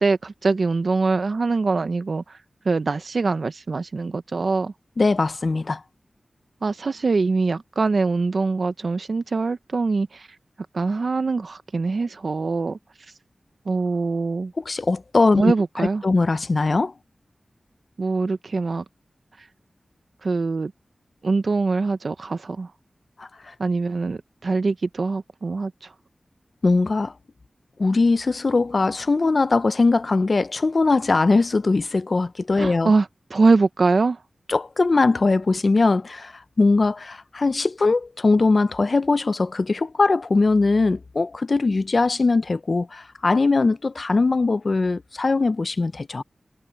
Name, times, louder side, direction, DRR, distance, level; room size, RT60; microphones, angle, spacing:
voice 1, 0.0-2.4 2.7-4.7 6.6-10.3 10.7-12.8 13.7-14.5 15.4-16.0 18.0-18.8 19.4-19.5 20.2-20.7 21.2-22.7 23.6-25.9 32.6-34.2, right 3 dB, 65° right, 0.7 m, -23 dB
voice 2, 5.0-5.8 14.6-16.9 23.2-23.3 26.6-27.1 27.8-32.9 34.5-46.2, left 3 dB, 55° left, 0.6 m, -21 dB
wide cardioid pair, 75°, 0 cm